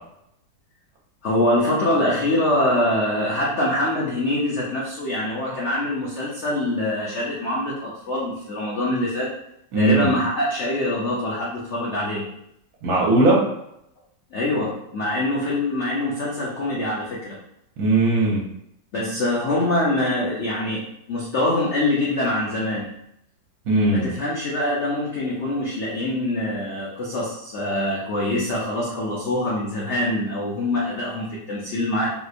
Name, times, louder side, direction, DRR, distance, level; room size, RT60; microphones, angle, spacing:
voice 1, 1.2-9.3 9.8-12.3 14.3-17.4 18.9-23.0 23.9-32.1, left 1 dB, 80° left, -4 dB, 0.6 m, -24 dB
voice 2, 9.7-10.1 12.8-13.4 17.8-18.4 23.7-24.1, right 2 dB, 60° right, -3 dB, 1.1 m, -18 dB
3.6 x 2.9 x 2.4 m, 0.78 s
omnidirectional pair, 2.0 m